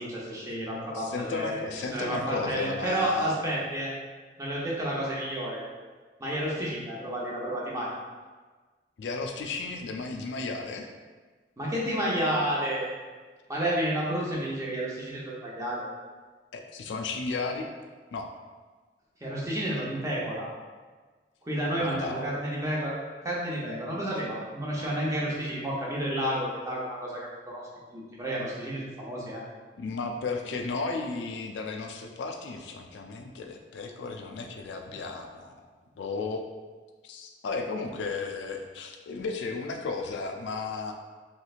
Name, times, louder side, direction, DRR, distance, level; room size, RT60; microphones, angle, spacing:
voice 1, 0.0-1.6 1.9-3.9 4.4-5.6 6.2-7.9 11.6-13.0 13.5-15.9 19.2-20.5 21.4-22.9 23.2-29.4, right 1 dB, 20° right, -5 dB, 0.7 m, -31 dB
voice 2, 0.9-3.4 9.0-10.9 16.5-17.7 18.1-18.3 21.8-22.3 29.8-35.7 36.0-36.4 37.0-40.9, left 3 dB, 85° left, 3 dB, 0.4 m, -34 dB
3.1 x 3.1 x 2.4 m, 1.4 s
head